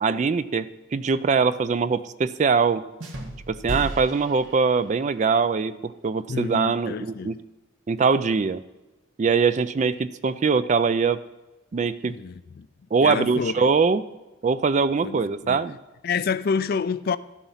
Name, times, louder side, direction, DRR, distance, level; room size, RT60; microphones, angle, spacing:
voice 1, 0.0-2.8 3.5-7.4 7.9-8.6 9.2-11.2 11.7-12.2 12.9-14.0 14.4-15.8, right 5 dB, 35° right, 0.3 m, -22 dB
sound 1, 3.0-5.2, right 1 dB, 60° right, 1.6 m, -35 dB
voice 2, 6.3-7.3 12.0-12.7 13.0-13.5 15.0-15.6 16.0-17.2, left 5 dB, 45° left, 0.3 m, -28 dB
13.0 x 7.2 x 5.6 m
head